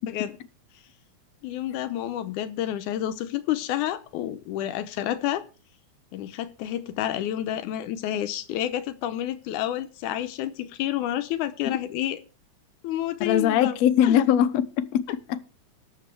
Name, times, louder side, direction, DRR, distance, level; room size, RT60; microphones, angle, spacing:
voice 1, 1.4-5.4 6.1-12.2 12.8-13.8 14.0-14.2, left 12 dB, 85° left, 2.2 m, -29 dB
voice 2, 13.2-15.4, left 10 dB, 70° left, 1.9 m, -21 dB
19.5 x 6.7 x 3.4 m
omnidirectional pair, 3.6 m